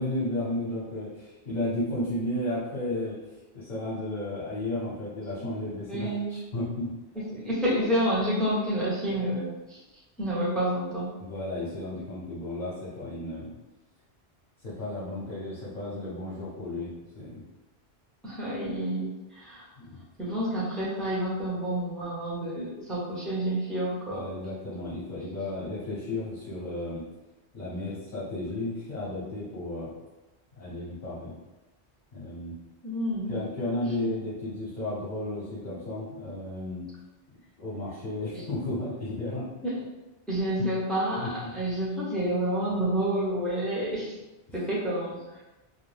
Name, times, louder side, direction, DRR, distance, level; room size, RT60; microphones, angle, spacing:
voice 1, 0.0-3.2 3.5-6.9 11.2-13.5 14.6-17.4 19.8-20.0 24.1-27.1 27.5-29.9 30.6-31.3 32.1-32.5 33.3-36.9 37.6-39.5 40.6-40.7 41.2-41.5, left 1 dB, 45° left, -9 dB, 0.8 m, -33 dB
voice 2, 5.9-6.3 7.3-9.8 10.2-11.2 18.2-19.6 20.2-24.3 32.8-33.3 34.0-34.1 38.3-38.4 39.6-39.8 40.3-44.1 44.5-45.2, right 1 dB, ahead, -6 dB, 0.5 m, -29 dB
2.4 x 2.2 x 3.2 m, 1.0 s
omnidirectional pair, 1.1 m